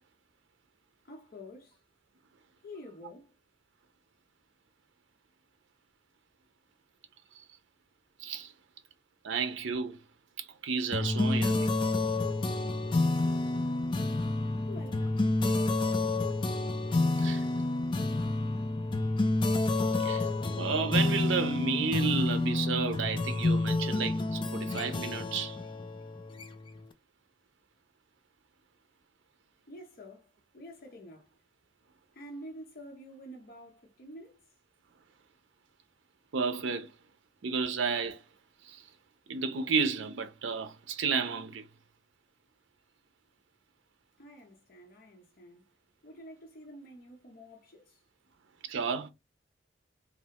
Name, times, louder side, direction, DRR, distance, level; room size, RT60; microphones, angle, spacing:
voice 1, 1.0-1.8 2.6-3.3 14.7-15.3 29.7-31.3 32.1-34.4 44.2-45.6 46.0-48.0, equal, 50° left, 0.7 m, -48 dB
voice 2, 8.2-8.5 9.2-10.0 10.4-11.7 17.2-17.5 20.0-20.3 20.6-25.6 36.3-36.9 37.4-38.2 38.7-38.8 39.3-41.6 48.7-49.1, right 5 dB, 80° right, 0.5 m, -32 dB
sound 1, 10.9-26.8, left 2 dB, 25° left, 0.3 m, -29 dB
3.2 x 2.0 x 2.8 m
head